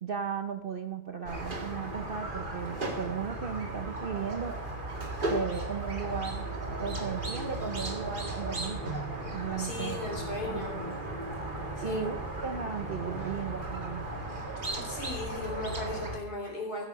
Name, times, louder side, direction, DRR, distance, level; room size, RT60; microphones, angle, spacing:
voice 1, 0.0-4.5 5.3-6.5 6.8-9.0 9.3-10.0 10.5-10.9 11.8-12.2 12.4-14.0, right 7 dB, 50° right, 6 dB, 0.7 m, -36 dB
Squeak, 1.2-16.2, right 1 dB, 30° right, 1.9 m, -36 dB
voice 2, 9.6-10.8 11.8-12.1 14.7-16.9, left 2 dB, 75° left, 0 dB, 4.3 m, -36 dB
15.5 x 7.7 x 6.4 m, 0.81 s
omnidirectional pair, 1.7 m